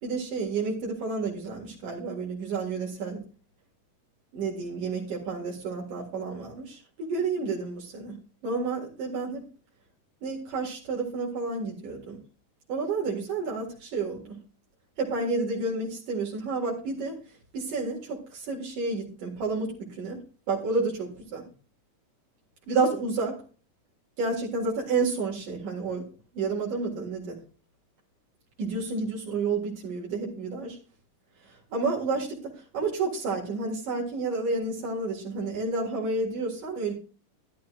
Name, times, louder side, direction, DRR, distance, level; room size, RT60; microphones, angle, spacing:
voice 1, 0.0-3.2 4.3-8.2 8.4-9.4 10.2-12.2 12.7-14.4 15.0-17.2 17.5-20.2 20.5-21.4 22.7-23.4 24.2-26.1 26.3-27.4 28.6-30.8 31.4-36.9, right 3 dB, 75° right, -4 dB, 3.5 m, -30 dB
13.5 x 11.5 x 2.5 m, 0.37 s
omnidirectional pair, 3.8 m